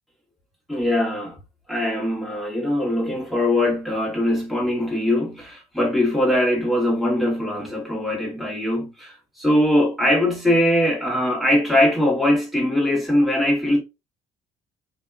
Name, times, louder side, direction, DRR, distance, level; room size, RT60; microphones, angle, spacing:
voice 1, 0.7-1.4 1.7-13.8, left 1 dB, ahead, 1.4 m, -21 dB
2.7 x 2.1 x 2.3 m
cardioid pair, 110°, 17 cm